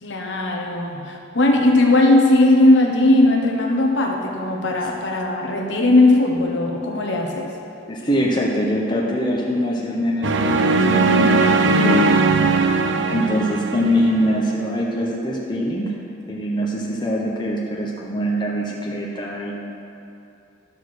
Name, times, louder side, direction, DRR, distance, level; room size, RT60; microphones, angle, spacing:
voice 1, 0.0-7.5, left 2 dB, 65° left, 0 dB, 1.1 m, -18 dB
voice 2, 7.9-12.3 13.1-16.0 16.3-19.6, equal, 20° left, -2 dB, 0.8 m, -23 dB
sound 1, 10.2-14.4, right 3 dB, 65° right, 0.6 m, -19 dB
11.5 x 4.4 x 6.4 m, 2.8 s
head